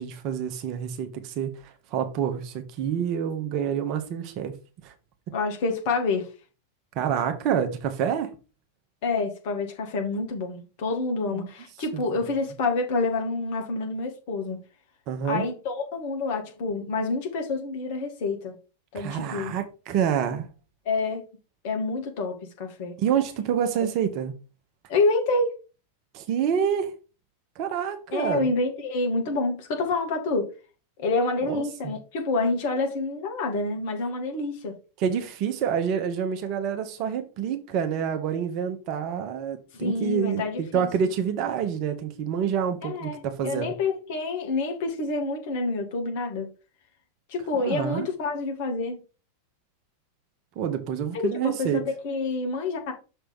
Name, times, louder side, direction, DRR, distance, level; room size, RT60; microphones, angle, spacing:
voice 1, 0.0-4.5 4.8-4.9 6.9-8.3 11.3-11.5 11.9-12.0 15.1-15.4 18.9-20.5 23.0-24.3 26.1-26.9 27.6-28.5 31.4-31.9 35.0-43.7 47.6-48.1 50.6-51.8, right 8 dB, 40° right, 1.0 m, -27 dB
voice 2, 5.3-6.3 9.0-14.6 15.2-18.6 18.9-19.5 20.9-21.3 21.6-22.9 24.9-25.6 28.1-30.5 31.0-34.7 39.7-40.9 42.8-46.5 47.3-49.0 51.4-52.9, left 3 dB, 50° left, 1.8 m, -28 dB
6.3 x 3.3 x 5.3 m
figure-of-eight pair, 90°, 0 cm